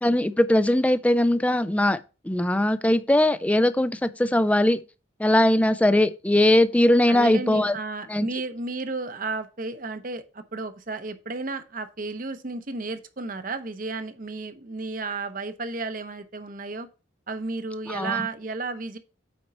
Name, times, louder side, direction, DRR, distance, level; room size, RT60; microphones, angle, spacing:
voice 1, 0.0-2.0 2.2-4.8 5.2-7.8 8.1-8.3 17.9-18.2, left 1 dB, 5° left, 0.4 m, -20 dB
voice 2, 7.1-16.9 17.3-19.0, right 3 dB, 45° right, 0.8 m, -33 dB
8.7 x 4.5 x 4.2 m
head